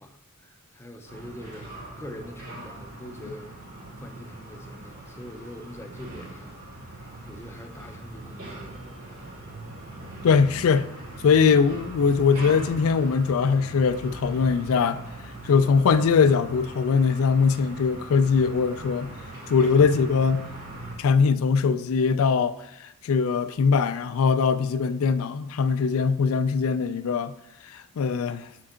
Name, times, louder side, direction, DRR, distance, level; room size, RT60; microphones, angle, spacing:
voice 1, 0.0-3.5 4.0-8.9, left 1 dB, 10° left, 0.5 m, -44 dB
sound 1, 1.1-21.0, right 2 dB, 75° right, 1.8 m, -41 dB
voice 2, 10.2-10.9 11.2-15.0 15.4-19.1 19.5-20.5 21.0-27.3 27.6-28.5, left 5 dB, 70° left, 0.3 m, -21 dB
6.6 x 4.4 x 3.7 m
head